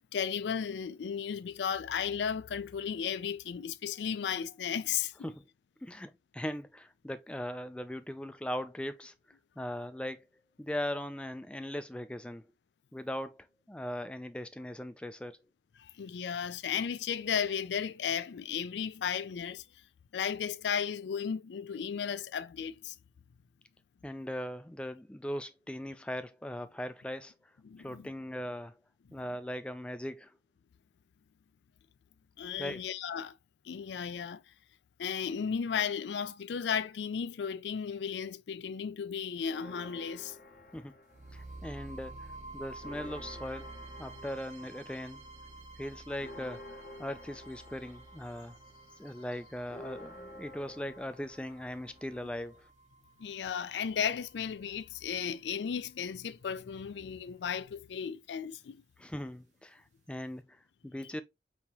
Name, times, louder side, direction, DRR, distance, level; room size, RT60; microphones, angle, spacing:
voice 1, 0.0-5.3 15.8-19.6 20.1-23.0 27.6-28.1 32.4-33.4 33.6-34.4 35.0-40.4 53.2-58.8, left 7 dB, 85° left, 0.4 m, -35 dB
voice 2, 5.8-9.1 9.6-10.2 10.6-12.5 12.9-15.4 24.0-27.3 27.8-28.8 29.1-30.3 32.6-32.8 40.7-40.9 41.3-43.7 44.0-45.2 45.8-48.6 49.0-52.7 59.0-61.2, left 1 dB, 5° left, 0.3 m, -39 dB
Church bell, 39.4-41.8 42.1-42.2 42.6-52.6, left 1 dB, 55° left, 0.7 m, -51 dB
sound 1, 41.1-55.1, right 2 dB, 40° right, 0.7 m, -50 dB
5.4 x 2.9 x 2.9 m
head